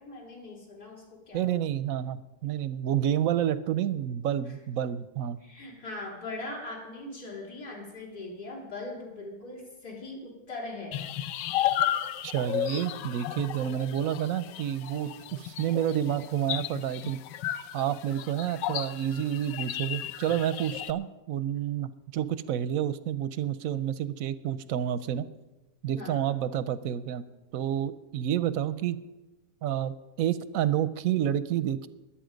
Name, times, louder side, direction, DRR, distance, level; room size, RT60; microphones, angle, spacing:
voice 1, 0.0-1.5 5.4-11.0 25.9-26.2, left 2 dB, 60° left, -3 dB, 4.1 m, -40 dB
voice 2, 1.3-5.4 12.2-17.2 17.7-25.2 25.8-27.2 27.5-29.0 29.6-31.9, right 10 dB, 65° right, 15 dB, 0.9 m, -29 dB
sound 1, 10.9-20.9, left 11 dB, 85° left, 1.3 m, -33 dB
22.0 x 8.8 x 5.2 m, 1.0 s
omnidirectional pair, 1.9 m